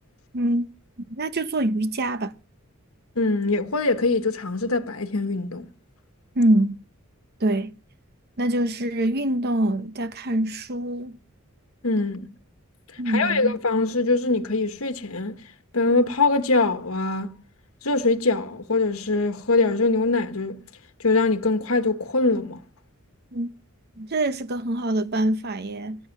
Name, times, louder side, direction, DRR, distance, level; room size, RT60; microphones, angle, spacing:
voice 1, 0.3-0.7 1.1-2.3 6.4-6.8 7.4-7.7 8.4-11.2 13.0-13.5 23.3-23.5 24.0-26.0, right 1 dB, 45° right, 0.9 m, -24 dB
voice 2, 3.1-5.7 11.8-12.3 13.1-15.4 15.7-17.4 17.8-20.6 21.0-22.6, left 3 dB, 65° left, 1.4 m, -23 dB
19.0 x 8.7 x 6.0 m
head